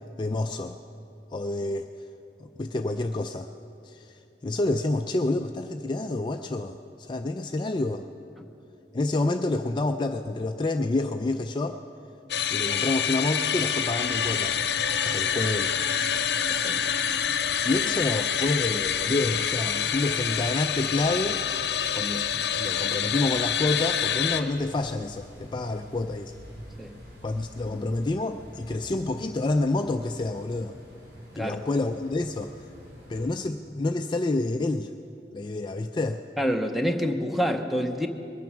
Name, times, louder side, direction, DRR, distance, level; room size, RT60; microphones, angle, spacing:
voice 1, 0.2-0.8 1.3-1.9 2.4-3.5 3.8-8.1 8.9-11.8 12.5-14.6 15.0-15.7 17.6-21.4 21.9-26.3 27.2-30.8 31.4-32.5 33.1-34.9 35.3-36.2, left 2 dB, 25° left, 6 dB, 0.3 m, -28 dB
sound 1, 12.3-24.4, left 8 dB, 70° left, 0.7 m, -27 dB
sound 2, 14.0-33.2, equal, 85° right, 3.8 m, -47 dB
voice 2, 36.4-38.1, equal, ahead, 5 dB, 0.7 m, -27 dB
21.0 x 9.1 x 6.1 m, 2.8 s
head